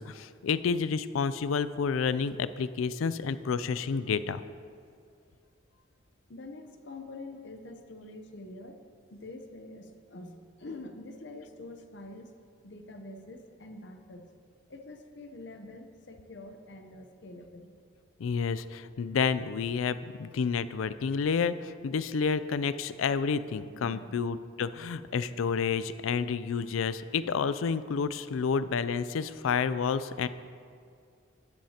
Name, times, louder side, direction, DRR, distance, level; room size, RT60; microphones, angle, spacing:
voice 1, 0.0-4.4 18.2-30.3, left 5 dB, 90° left, 14 dB, 0.4 m, -30 dB
voice 2, 6.3-8.8 9.1-14.3 14.7-17.7 23.7-24.2, left 2 dB, 60° left, 6 dB, 0.8 m, -46 dB
12.0 x 10.5 x 2.9 m, 2.3 s
head